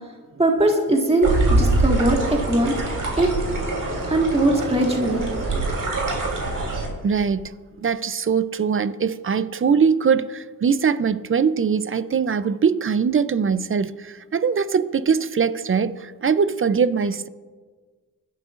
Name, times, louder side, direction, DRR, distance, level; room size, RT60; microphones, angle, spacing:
voice 1, 0.4-2.7 3.2-3.3 4.1-5.2, right 1 dB, 15° right, 1.7 m, -20 dB
sound 1, 1.2-6.9, right 2 dB, 60° right, 3.4 m, -24 dB
voice 2, 7.0-7.5 7.8-17.3, right 6 dB, 35° right, 0.5 m, -22 dB
24.0 x 11.5 x 2.5 m
cardioid pair, 70°, 36 cm